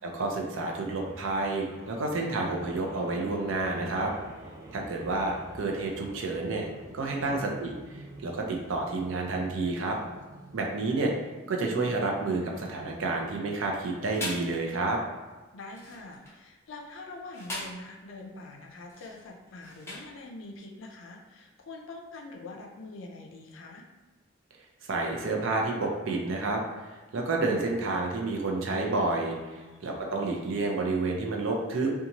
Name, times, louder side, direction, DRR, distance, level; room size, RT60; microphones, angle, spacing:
voice 1, 0.0-4.1 4.7-6.7 6.9-7.7 8.2-10.0 10.5-11.1 11.5-15.0 24.9-26.6 27.1-31.9, right 3 dB, 80° right, 1 dB, 0.5 m, -29 dB
sound 1, 0.6-13.9, right 1 dB, 15° right, 0.3 m, -47 dB
sound 2, 13.7-14.6 15.6-16.4 17.1-17.9 18.8-20.2, left 1 dB, 15° left, 0.7 m, -40 dB
voice 2, 15.5-23.9 29.5-30.1, left 2 dB, 75° left, 1 dB, 0.4 m, -45 dB
2.6 x 2.3 x 2.8 m, 1.2 s
head